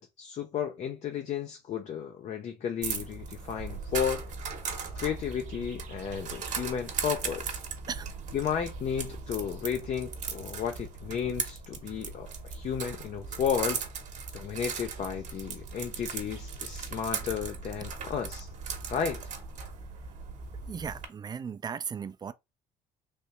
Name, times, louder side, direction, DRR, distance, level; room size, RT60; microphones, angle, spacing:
voice 1, 0.0-4.2 4.9-7.6 8.3-13.8 14.3-18.5 18.9-19.2, left 8 dB, 50° left, 0.5 m, -33 dB
sound 1, 2.8-21.0, right 5 dB, 55° right, 0.9 m, -38 dB
voice 2, 20.7-22.3, right 6 dB, 30° right, 0.4 m, -36 dB
3.3 x 2.7 x 2.9 m
supercardioid pair, 70°, 15 cm